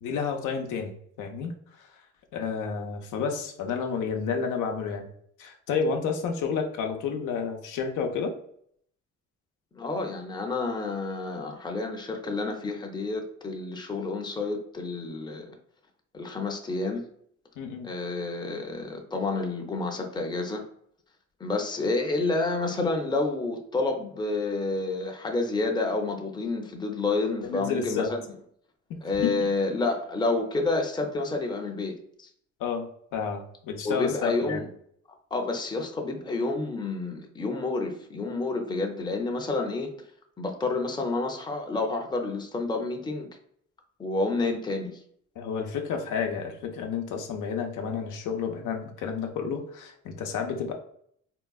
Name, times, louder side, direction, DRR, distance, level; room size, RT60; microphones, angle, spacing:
voice 1, 0.0-1.5 1.8-1.9 2.3-5.1 5.4-8.3 17.6-17.9 27.4-28.1 28.9-29.4 32.6-34.6 45.4-50.7, left 6 dB, 85° left, 4 dB, 0.6 m, -31 dB
voice 2, 9.7-15.5 16.1-17.1 17.8-20.6 21.4-28.2 29.0-32.3 33.8-34.7 35.3-39.9 40.4-43.3 44.0-45.0, left 3 dB, 15° left, 3 dB, 0.5 m, -29 dB
3.7 x 2.2 x 2.3 m, 0.65 s
cardioid pair, 90°, 30 cm